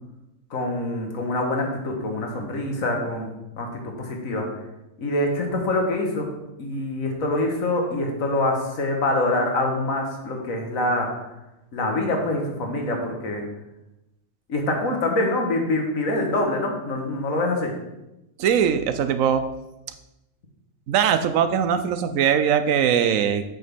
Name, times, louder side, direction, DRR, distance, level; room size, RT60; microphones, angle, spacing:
voice 1, 0.5-3.3 3.6-4.5 5.0-6.3 6.6-11.1 11.7-13.4 14.5-17.7, left 2 dB, 90° left, 2 dB, 1.8 m, -25 dB
voice 2, 18.4-19.4 20.9-23.4, right 8 dB, 80° right, 10 dB, 1.0 m, -21 dB
7.8 x 6.4 x 3.5 m, 0.94 s
omnidirectional pair, 1.4 m